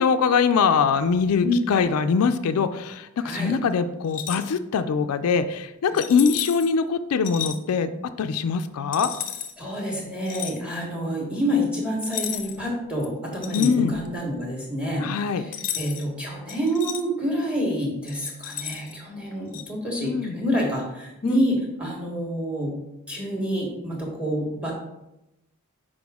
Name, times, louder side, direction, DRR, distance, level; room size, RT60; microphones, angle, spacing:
voice 1, 0.0-7.9 8.2-9.1 13.5-14.0 15.0-15.4 20.0-20.4 21.2-21.4, left 5 dB, 80° left, 10 dB, 0.4 m, -22 dB
sound 1, 4.0-4.5 5.9-6.7 7.2-7.6 8.9-9.5 10.3-10.6 12.0-12.6 13.0-14.2 15.5-16.1 16.5-17.0 18.1-18.9 19.5-19.7, left 10 dB, 40° left, 0.6 m, -33 dB
voice 2, 9.6-15.1 15.4-22.7 23.1-24.7, equal, 5° right, -1 dB, 1.4 m, -27 dB
6.0 x 4.9 x 3.5 m, 0.92 s
head